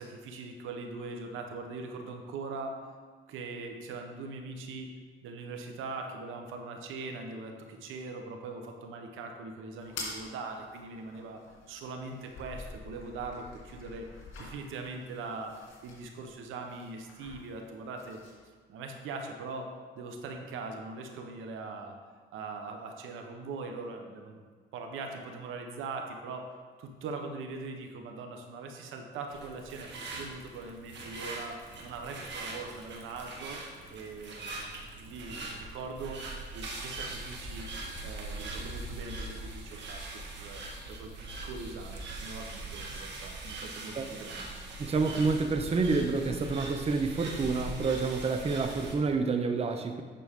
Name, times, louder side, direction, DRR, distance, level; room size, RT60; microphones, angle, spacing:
voice 1, 0.0-2.9 3.3-4.9 5.2-18.2 18.7-22.0 22.3-24.4 24.7-33.6 33.9-34.5 35.0-37.7 38.0-41.1 41.4-44.5, right 3 dB, 90° right, 4 dB, 1.0 m, -41 dB
sound 1, 9.8-18.4, left 3 dB, 80° left, 2.5 m, -47 dB
sound 2, 29.3-48.9, right 2 dB, 65° right, 1.6 m, -41 dB
voice 2, 44.8-50.0, right 4 dB, 30° right, 6 dB, 0.7 m, -28 dB
9.2 x 6.2 x 3.6 m, 1.5 s
cardioid pair, 90°, 20 cm